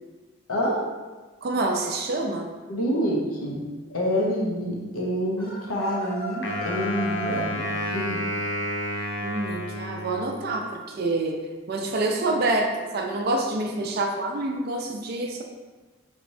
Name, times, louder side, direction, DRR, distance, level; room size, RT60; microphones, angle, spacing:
voice 1, 1.4-2.5 9.2-11.4 11.7-15.4, right 2 dB, 45° right, 3 dB, 0.3 m, -27 dB
voice 2, 2.7-3.6 3.9-7.6 7.9-8.2, equal, 85° left, -2 dB, 0.8 m, -27 dB
sound 1, 5.4-7.5, right 3 dB, 10° left, 0.7 m, -34 dB
Wind instrument woodwind instrument, 6.4-10.7, left 1 dB, 55° left, 0.4 m, -31 dB
3.3 x 3.0 x 2.7 m, 1.3 s
head